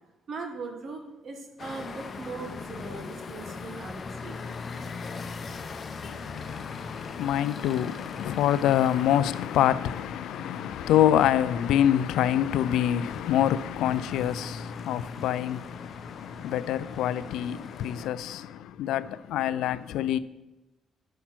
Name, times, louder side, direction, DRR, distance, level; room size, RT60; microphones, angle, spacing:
voice 1, 0.3-4.4, right 4 dB, 55° right, 1.3 m, -39 dB
sound 1, 1.6-18.1, left 4 dB, 45° left, 0.7 m, -40 dB
voice 2, 6.0-20.2, left 11 dB, 85° left, 0.3 m, -26 dB
8.7 x 5.7 x 6.0 m
cardioid pair, 90°, 0 cm